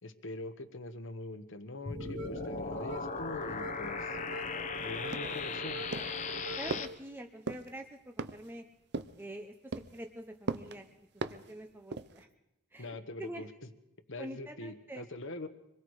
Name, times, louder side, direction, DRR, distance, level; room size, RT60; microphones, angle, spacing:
voice 1, 0.0-4.2 4.8-5.8 12.8-13.5 14.1-15.5, left 2 dB, 55° left, 10 dB, 1.3 m, -43 dB
sound 1, 1.9-6.9, left 4 dB, 35° left, 1.1 m, -38 dB
sound 2, 1.9-6.9, equal, 80° right, 4.0 m, -44 dB
sound 3, 5.1-5.5 5.9-6.2 6.7-6.9 7.5-7.7 8.2-8.5 8.9-9.2 9.7-10.0 10.5-10.8 11.2-11.5 11.9-12.2, right 3 dB, 50° right, 0.7 m, -38 dB
voice 2, 6.6-8.7 9.2-12.3 12.7-13.5 14.2-15.1, right 1 dB, 10° right, 4 dB, 0.9 m, -46 dB
25.0 x 21.0 x 4.9 m, 0.88 s
head